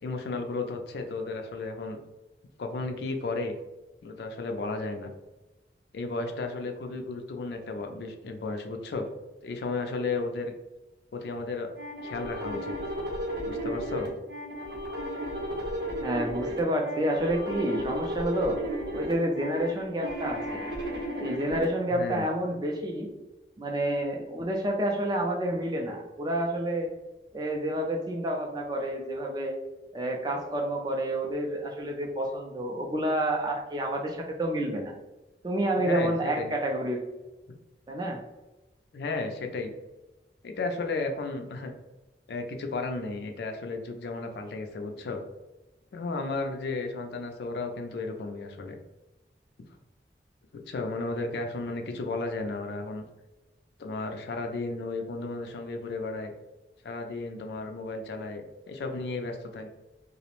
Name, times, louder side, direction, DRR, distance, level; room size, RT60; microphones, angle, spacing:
voice 1, 0.0-2.0 2.6-3.5 4.0-5.1 5.9-9.1 9.4-10.5 11.1-11.7 12.0-12.7 13.5-14.1 21.9-22.3 35.8-36.5 38.9-39.7 40.4-41.7 42.3-45.2 45.9-48.8 50.7-53.0 53.8-56.3 56.8-59.7, left 3 dB, 70° left, 4 dB, 0.4 m, -34 dB
sound 1, 11.8-21.6, equal, 75° right, 0.7 m, -34 dB
voice 2, 16.0-18.6 18.9-20.6 21.2-23.1 23.6-26.9 27.3-29.6 29.9-34.9 35.4-37.0 37.9-38.2, right 1 dB, 25° right, 1 dB, 0.3 m, -29 dB
2.4 x 2.0 x 2.9 m, 1.1 s
head